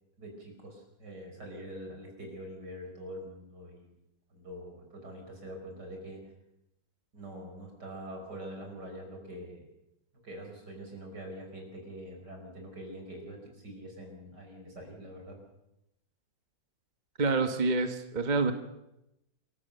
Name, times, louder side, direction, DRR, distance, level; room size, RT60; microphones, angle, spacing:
voice 1, 0.2-3.9 4.3-6.2 7.1-9.7 10.2-15.4, equal, 65° right, 2 dB, 6.2 m, -44 dB
voice 2, 17.2-18.5, right 3 dB, 25° right, 8 dB, 1.2 m, -27 dB
27.0 x 15.5 x 6.8 m, 0.88 s
omnidirectional pair, 2.0 m